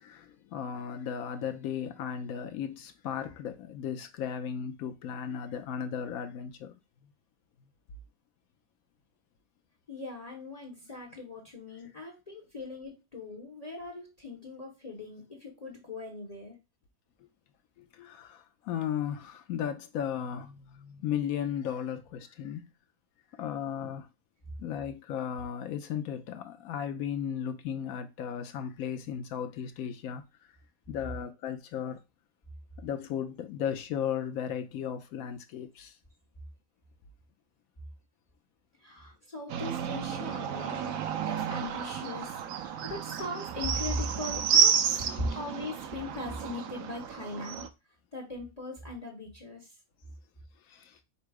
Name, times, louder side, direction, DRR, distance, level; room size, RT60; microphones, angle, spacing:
voice 1, 0.0-6.7 18.0-22.7 23.4-24.1 24.6-30.2 30.9-32.0 32.8-35.9 50.7-50.9, left 8 dB, 80° left, 1.0 m, -35 dB
voice 2, 9.9-16.6 38.8-47.6 48.1-49.7, left 2 dB, 30° left, 1.0 m, -39 dB
sound 1, 39.5-47.7, right 7 dB, 75° right, 1.0 m, -30 dB
5.5 x 2.0 x 4.6 m
omnidirectional pair, 1.5 m